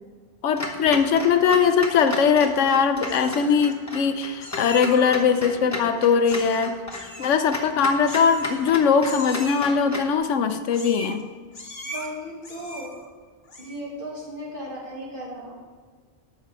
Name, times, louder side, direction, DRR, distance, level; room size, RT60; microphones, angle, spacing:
voice 1, 0.4-6.7 7.2-11.2, left 6 dB, 85° left, 9 dB, 1.1 m, -20 dB
Clock, 0.6-10.2, left 2 dB, 15° left, 1.1 m, -35 dB
Meow, 2.3-2.7 3.0-3.7 4.4-5.2 6.2-6.6 6.9-7.3 8.1-8.8 9.0-9.8 10.7-11.2 11.5-12.1 12.4-13.0 13.4-13.9, left 1 dB, 45° left, 1.4 m, -39 dB
voice 2, 5.4-5.9 11.8-12.9 13.6-15.6, equal, 45° right, -3 dB, 2.3 m, -36 dB
13.0 x 5.9 x 4.7 m, 1.5 s
omnidirectional pair, 1.2 m